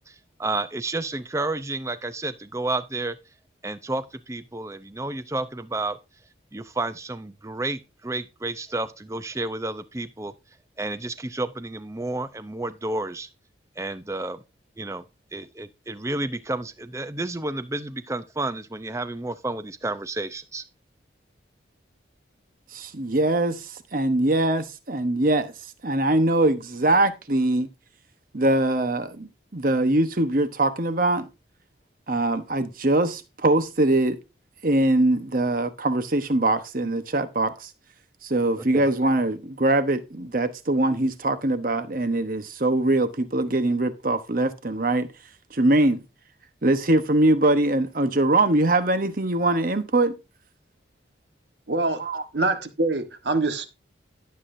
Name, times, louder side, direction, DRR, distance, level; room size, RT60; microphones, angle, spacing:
voice 1, 0.1-3.2 3.6-6.0 6.5-10.3 10.8-13.3 13.8-14.4 14.8-15.0 15.3-20.6 38.6-38.9, right 2 dB, 15° right, 0.6 m, -31 dB
voice 2, 22.7-25.5 25.8-27.7 28.3-31.3 32.1-34.2 34.6-37.7 38.2-45.1 45.5-46.0 46.6-50.1 52.0-52.2, right 2 dB, 45° right, 1.1 m, -22 dB
voice 3, 51.7-52.0 52.3-53.7, right 2 dB, 65° right, 1.4 m, -24 dB
13.5 x 7.7 x 2.7 m
head